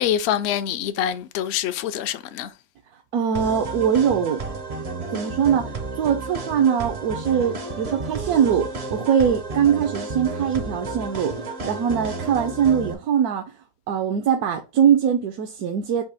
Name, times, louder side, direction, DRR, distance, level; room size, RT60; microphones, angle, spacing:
voice 1, 0.0-2.5, left 10 dB, 70° left, 0.6 m, -25 dB
voice 2, 3.1-4.4 5.1-13.5 13.9-16.0, right 8 dB, 80° right, 1.1 m, -22 dB
sound 1, 3.3-12.9, right 3 dB, 50° right, 0.4 m, -32 dB
4.2 x 2.6 x 4.9 m
omnidirectional pair, 1.6 m